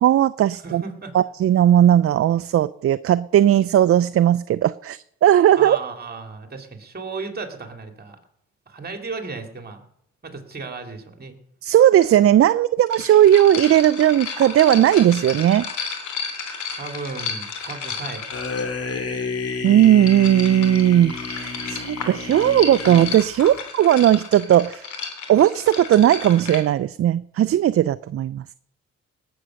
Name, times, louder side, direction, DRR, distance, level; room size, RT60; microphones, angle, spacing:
voice 1, 0.0-0.8 1.1-5.8 11.6-15.7 19.6-24.9 25.3-28.4, right 11 dB, 50° right, 15 dB, 0.5 m, -17 dB
voice 2, 0.6-1.1 5.6-8.2 8.7-9.8 10.2-11.4 16.7-18.2, right 4 dB, 30° right, 5 dB, 2.9 m, -34 dB
sound 1, 12.0-12.1 12.9-18.7 19.7-26.6, left 5 dB, 75° left, 2.9 m, -33 dB
sound 2, 18.3-23.6, left 4 dB, 55° left, 2.5 m, -31 dB
18.5 x 8.1 x 6.4 m, 0.76 s
cardioid pair, 75°, 30 cm